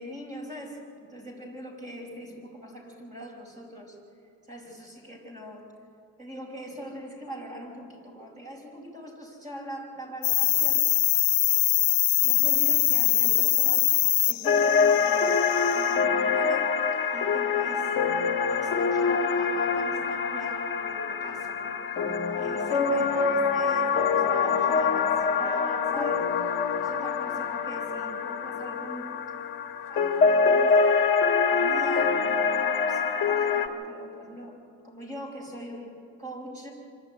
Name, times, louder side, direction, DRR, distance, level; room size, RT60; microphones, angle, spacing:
voice 1, 0.0-4.0 4.5-5.7 6.2-10.8 12.2-13.9 14.2-15.4 15.7-16.7 17.1-18.0 18.5-21.8 22.4-26.3 26.7-29.1 29.9-34.6 34.8-36.7, right 1 dB, 20° right, -2 dB, 5.4 m, -41 dB
sound 1, 10.2-16.0, left 20 dB, 85° left, 0.5 m, -23 dB
sound 2, 14.4-33.7, left 5 dB, 30° left, 1.5 m, -25 dB
26.0 x 11.5 x 9.1 m, 2.6 s
cardioid pair, 160°, 38 cm